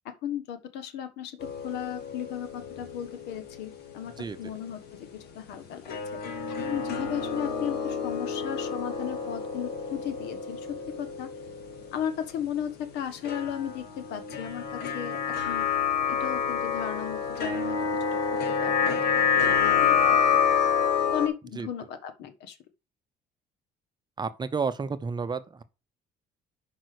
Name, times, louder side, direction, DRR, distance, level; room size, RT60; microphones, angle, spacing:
voice 1, 0.0-4.1 4.4-4.8 5.1-6.2 6.5-10.7 11.0-11.3 11.9-15.2 15.4-15.7 16.1-17.8 18.1-20.2 21.1-22.6, left 9 dB, 85° left, 1.4 m, -35 dB
sound 1, 1.4-3.9 4.2-4.3 5.9-12.4 13.2-21.3, left 7 dB, 70° left, 2.1 m, -28 dB
voice 2, 24.2-25.6, right 5 dB, 25° right, 0.8 m, -31 dB
6.0 x 5.3 x 6.4 m
cardioid pair, 110°, 17 cm